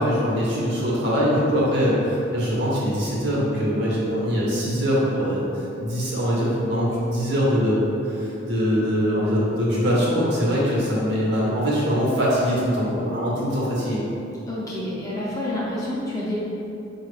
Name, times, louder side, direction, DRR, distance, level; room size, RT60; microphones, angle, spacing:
voice 1, 0.0-7.8 8.0-14.0, equal, 55° right, -6 dB, 1.0 m, -22 dB
voice 2, 14.5-16.4, left 1 dB, 15° left, -7 dB, 0.5 m, -28 dB
4.7 x 2.3 x 3.3 m, 2.9 s
head